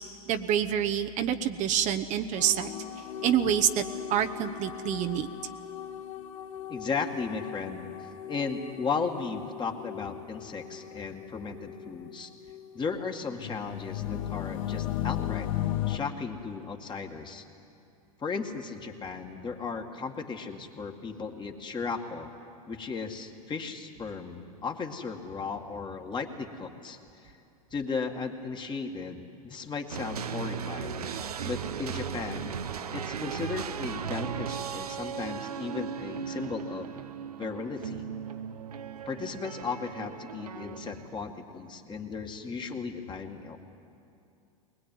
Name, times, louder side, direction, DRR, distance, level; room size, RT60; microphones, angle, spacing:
voice 1, 0.3-2.7 3.2-3.8 4.1-5.3, right 9 dB, 40° right, 6 dB, 1.0 m, -27 dB
sound 1, 2.3-12.2 12.4-16.0, left 12 dB, 65° left, 1.2 m, -37 dB
voice 2, 6.7-12.3 12.7-15.5 15.9-17.4 18.2-22.3 22.7-27.3 27.7-31.1 31.4-32.6 32.9-36.9 37.4-38.1 39.1-43.7, left 5 dB, 25° left, 4 dB, 2.1 m, -36 dB
sound 2, 29.9-41.1, right 7 dB, 90° right, 0.9 m, -37 dB
21.0 x 20.5 x 9.4 m, 2.6 s
hypercardioid pair, 100°, 19 cm